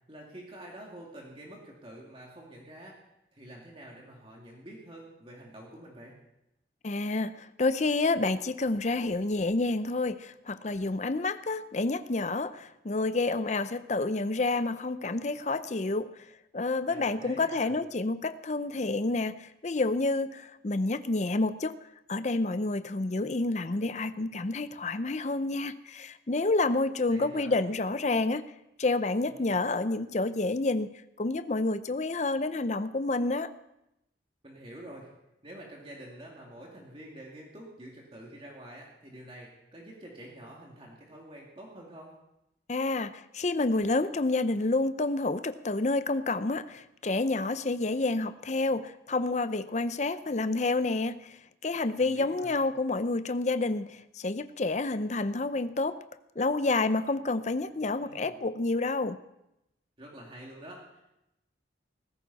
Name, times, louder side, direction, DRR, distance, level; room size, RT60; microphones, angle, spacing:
voice 1, 0.1-2.9 3.3-6.2 16.9-17.8 27.1-27.6 29.3-29.6 34.4-35.1 35.4-42.1 52.0-52.6 58.0-58.4 60.0-61.2, right 1 dB, 30° right, -2 dB, 2.4 m, -47 dB
voice 2, 6.8-16.3 16.5-28.5 28.8-33.5 42.7-56.0 56.4-59.2, left 2 dB, 40° left, 12 dB, 0.6 m, -29 dB
18.5 x 16.0 x 4.1 m, 0.88 s
head